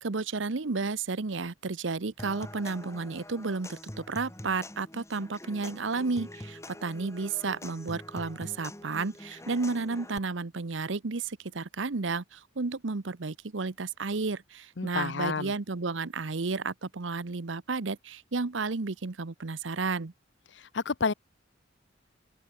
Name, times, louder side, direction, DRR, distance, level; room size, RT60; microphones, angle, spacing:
voice 1, 0.0-20.1, right 4 dB, 80° right, 0.9 m, -32 dB
Human voice / Acoustic guitar / Percussion, 2.2-10.2, left 1 dB, 15° left, 4.3 m, -45 dB
voice 2, 14.8-15.5 20.5-21.1, left 4 dB, 70° left, 0.8 m, -30 dB
open air
head